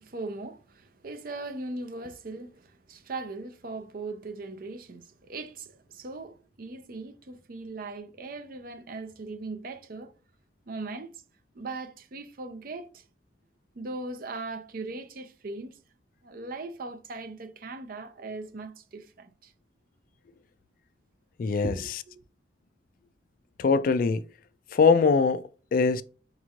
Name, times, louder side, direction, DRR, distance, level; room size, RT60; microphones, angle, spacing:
voice 1, 0.0-10.1 10.7-11.2 11.5-13.0 13.7-15.8 16.2-19.5 21.6-22.1, right 3 dB, 50° right, 0.5 m, -39 dB
voice 2, 21.4-21.7 23.6-24.2 24.7-25.4 25.7-26.0, left 5 dB, 50° left, 0.3 m, -21 dB
5.2 x 3.0 x 2.4 m
head